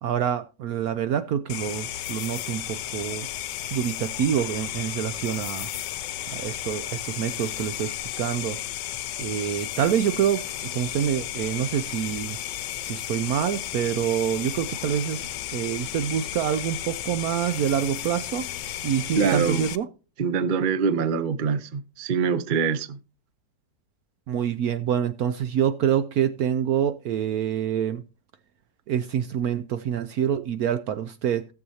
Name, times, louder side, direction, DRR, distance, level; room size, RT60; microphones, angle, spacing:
voice 1, 0.0-3.3 3.7-5.7 6.3-8.6 9.2-10.4 10.7-12.4 12.8-18.5 18.8-19.9 24.3-28.0 28.9-31.5, right 9 dB, 70° right, 1.0 m, -26 dB
sound 1, 1.5-19.8, left 12 dB, 75° left, 1.2 m, -34 dB
voice 2, 19.2-19.7 20.2-23.0, right 6 dB, 45° right, 0.6 m, -24 dB
17.0 x 7.2 x 2.8 m
omnidirectional pair, 2.0 m